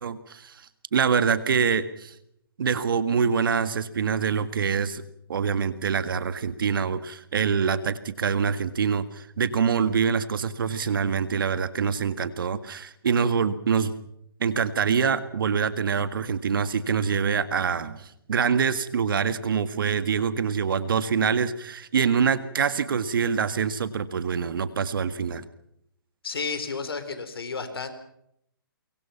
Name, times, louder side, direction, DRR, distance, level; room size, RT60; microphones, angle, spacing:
voice 1, 0.0-0.5 0.9-2.1 2.6-5.0 5.3-13.9 14.4-25.5, right 6 dB, 60° right, 12 dB, 1.9 m, -25 dB
voice 2, 26.2-27.9, left 4 dB, 75° left, 10 dB, 4.1 m, -32 dB
24.5 x 23.5 x 5.8 m, 0.75 s
hypercardioid pair, 150°, 13 cm